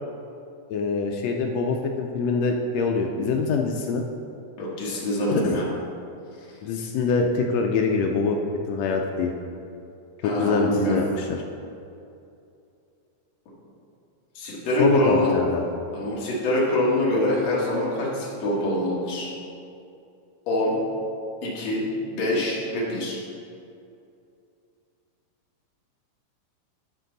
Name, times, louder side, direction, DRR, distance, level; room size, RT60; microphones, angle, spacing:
voice 1, 0.7-4.0 5.4-5.6 6.6-8.4 8.7-9.3 10.2-11.4 14.8-15.6, left 4 dB, 85° left, 2 dB, 1.5 m, -24 dB
voice 2, 4.6-5.7 10.2-11.0 14.4-15.3 15.9-19.3 20.5-20.7 21.4-21.9 22.1-23.2, left 1 dB, 60° left, -5 dB, 2.5 m, -25 dB
11.0 x 4.5 x 3.9 m, 2.6 s
omnidirectional pair, 3.5 m